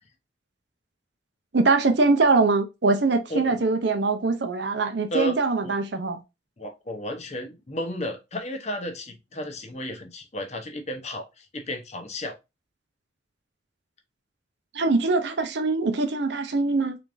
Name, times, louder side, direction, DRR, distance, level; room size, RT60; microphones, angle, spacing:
voice 1, 1.5-6.2 14.7-17.0, right 3 dB, 60° right, 0.6 m, -23 dB
voice 2, 6.6-12.4, left 1 dB, 35° left, 0.7 m, -33 dB
3.9 x 3.4 x 2.4 m
head